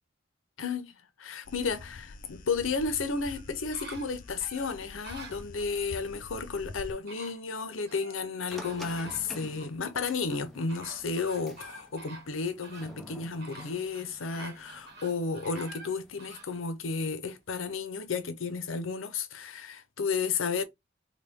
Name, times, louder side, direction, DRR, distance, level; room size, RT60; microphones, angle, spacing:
voice 1, 0.6-0.9 1.2-20.6, left 4 dB, 85° left, 0.7 m, -33 dB
sound 1, 1.4-6.9, left 3 dB, 40° left, 0.4 m, -46 dB
sound 2, 3.0-5.9 6.7-6.8 7.1-8.2 8.5-9.7 10.3-16.5 17.0-17.1, right 2 dB, 55° right, 1.1 m, -49 dB
sound 3, 8.5-16.6, equal, ahead, 0.8 m, -50 dB
3.9 x 2.3 x 3.5 m
head